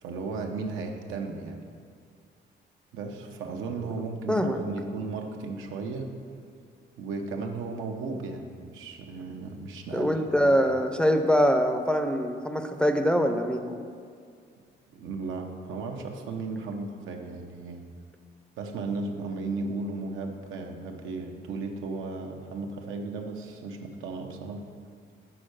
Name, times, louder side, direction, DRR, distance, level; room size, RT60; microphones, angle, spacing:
voice 1, 0.0-1.7 2.9-6.1 7.0-10.2 10.4-10.5 14.9-17.8 18.6-24.6, right 3 dB, 85° right, 3 dB, 0.8 m, -35 dB
voice 2, 4.3-4.6 9.9-13.8, equal, 5° left, 5 dB, 0.5 m, -24 dB
5.9 x 4.4 x 6.4 m, 2.2 s
cardioid pair, 90°, 20 cm